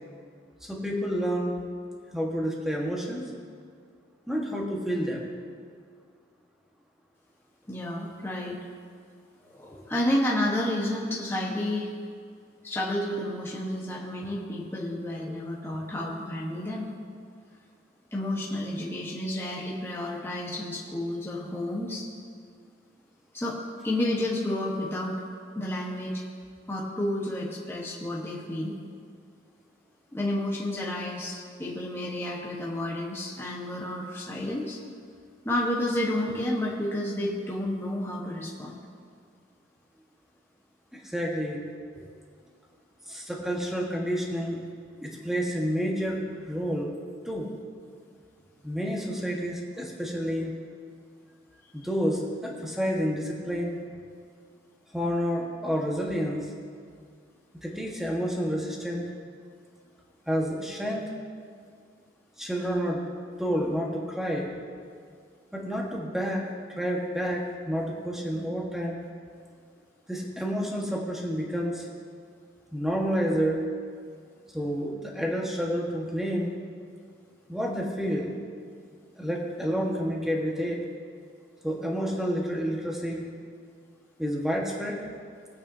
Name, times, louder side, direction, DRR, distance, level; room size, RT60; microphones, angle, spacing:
voice 1, 0.6-1.6 2.1-3.3 4.3-5.3 40.9-41.6 43.1-44.6 45.0-46.9 47.2-47.5 48.6-50.5 51.7-53.8 54.9-56.5 57.6-59.1 60.3-61.0 62.4-63.0 63.4-64.5 65.5-66.5 66.8-69.0 70.1-71.9 72.7-73.6 74.5-76.5 77.5-78.4 79.2-80.8 81.6-83.3 84.2-85.0, equal, ahead, -2 dB, 1.5 m, -29 dB
voice 2, 7.7-8.6 9.4-11.9 12.6-16.9 18.1-22.1 23.3-25.2 25.5-26.2 26.7-28.7 30.1-34.8 35.4-38.8 41.9-42.1 45.0-45.3, left 1 dB, 15° left, -4 dB, 1.3 m, -31 dB
20.0 x 8.8 x 2.8 m, 2.2 s
head